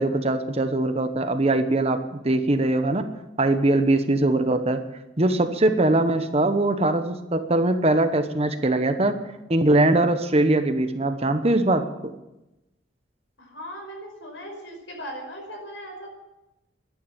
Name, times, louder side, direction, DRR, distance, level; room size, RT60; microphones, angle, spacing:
voice 1, 0.0-3.0 3.4-4.8 5.2-9.2 9.5-11.8, right 2 dB, 30° right, 8 dB, 1.0 m, -21 dB
voice 2, 13.4-16.1, equal, 80° left, 2 dB, 5.3 m, -38 dB
12.5 x 11.0 x 9.1 m, 0.99 s
head